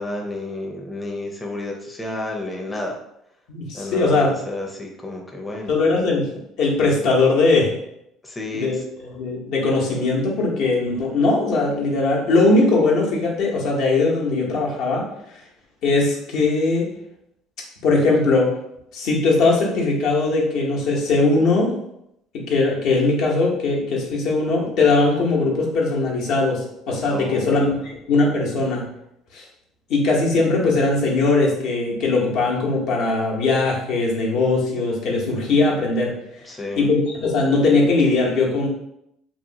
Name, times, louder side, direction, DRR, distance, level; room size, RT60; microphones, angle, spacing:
voice 1, 0.0-3.0 3.7-5.7 8.2-8.8 27.1-27.9 36.4-36.9, left 2 dB, 10° left, -1 dB, 0.5 m, -31 dB
voice 2, 3.5-4.3 5.7-6.3 6.6-7.7 8.5-15.0 15.8-16.9 17.8-18.5 18.9-21.7 22.5-28.8 29.3-29.4 29.9-36.1 36.8-38.7, left 3 dB, 70° left, -3 dB, 0.8 m, -20 dB
2.9 x 2.1 x 2.7 m, 0.79 s
hypercardioid pair, 75°, 0 cm